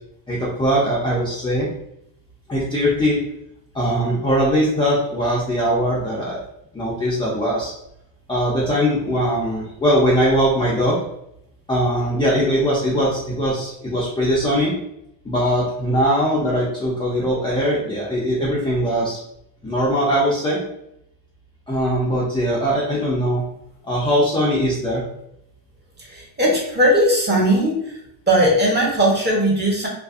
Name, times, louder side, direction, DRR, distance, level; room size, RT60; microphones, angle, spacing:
voice 1, 0.3-1.7 2.5-3.2 3.7-6.4 6.7-7.7 8.3-11.0 11.7-14.7 15.2-19.2 19.6-20.6 21.7-23.5 23.8-25.0, equal, 15° left, -6 dB, 0.3 m, -20 dB
voice 2, 26.1-27.8 28.3-29.9, equal, 25° right, -4 dB, 0.7 m, -18 dB
2.7 x 2.5 x 2.3 m, 0.79 s
cardioid pair, 145°, 42 cm